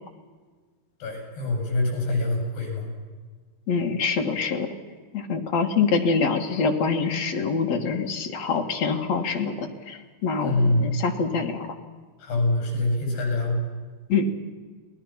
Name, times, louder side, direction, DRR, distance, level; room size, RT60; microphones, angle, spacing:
voice 1, 1.0-2.8 10.4-10.9 12.2-13.6, left 2 dB, 75° left, 1 dB, 9.0 m, -24 dB
voice 2, 3.7-4.7 5.1-11.7 14.1-14.3, left 5 dB, 55° left, 3 dB, 2.4 m, -25 dB
29.0 x 19.0 x 5.8 m, 1.5 s
omnidirectional pair, 4.8 m